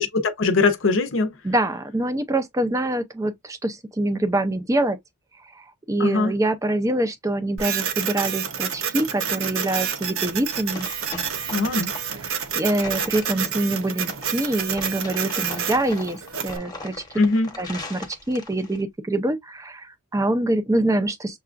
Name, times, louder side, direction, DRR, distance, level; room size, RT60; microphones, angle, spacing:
voice 1, 0.0-1.3 6.0-6.3 11.5-11.9 17.2-17.5, left 3 dB, 60° left, 0.6 m, -21 dB
voice 2, 1.4-5.0 5.5-10.9 12.2-17.0 17.6-21.4, right 1 dB, 15° right, 0.4 m, -25 dB
Printer, 7.6-16.6, right 8 dB, 65° right, 0.7 m, -29 dB
sound 1, 10.2-18.8, left 2 dB, 15° left, 0.9 m, -39 dB
6.6 x 2.4 x 2.4 m
head